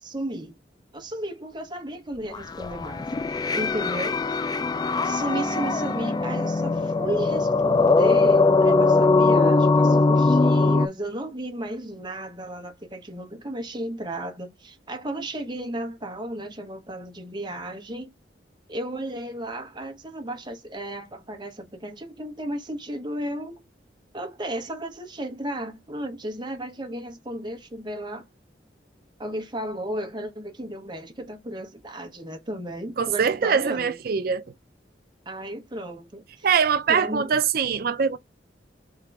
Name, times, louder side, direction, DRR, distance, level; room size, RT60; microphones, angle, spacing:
voice 1, 0.0-0.5 0.9-4.4 5.0-18.1 18.7-23.6 24.1-28.2 29.2-34.0 35.2-36.5 36.9-37.3, right 1 dB, 25° right, 1.1 m, -34 dB
sound 1, 2.3-10.9, left 3 dB, 20° left, 0.3 m, -21 dB
voice 2, 33.0-34.4 36.4-38.2, right 6 dB, 55° right, 0.4 m, -23 dB
3.7 x 2.9 x 4.6 m
head